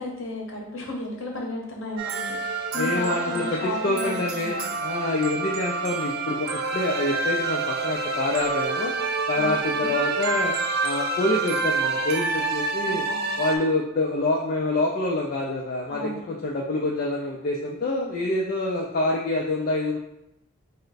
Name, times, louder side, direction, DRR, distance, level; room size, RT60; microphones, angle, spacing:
voice 1, 0.0-4.7 9.3-10.0 12.9-13.2 15.9-16.3, left 1 dB, 60° left, -1 dB, 0.8 m, -34 dB
sound 1, 2.0-13.6, right 3 dB, 45° right, 0.3 m, -28 dB
voice 2, 2.8-8.9 9.3-10.5 10.8-13.0 13.4-20.0, left 2 dB, 45° left, -2 dB, 0.3 m, -26 dB
3.2 x 2.1 x 3.9 m, 0.83 s
head